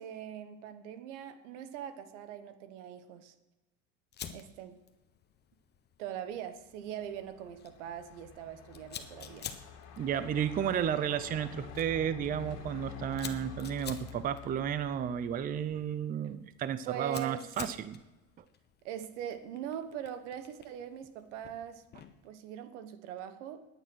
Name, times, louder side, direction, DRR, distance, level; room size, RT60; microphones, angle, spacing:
voice 1, 0.0-3.3 4.3-4.8 6.0-9.5 16.9-17.5 18.8-21.8 22.2-23.6, right 9 dB, 80° right, 11 dB, 1.4 m, -42 dB
Fire, 4.1-22.3, left 8 dB, 30° left, 1.1 m, -51 dB
Truck, 6.8-16.2, left 9 dB, 45° left, 2.3 m, -48 dB
voice 2, 10.0-18.0, right 9 dB, 25° right, 14 dB, 0.6 m, -33 dB
14.5 x 9.6 x 6.3 m, 1.1 s
supercardioid pair, 125°, 36 cm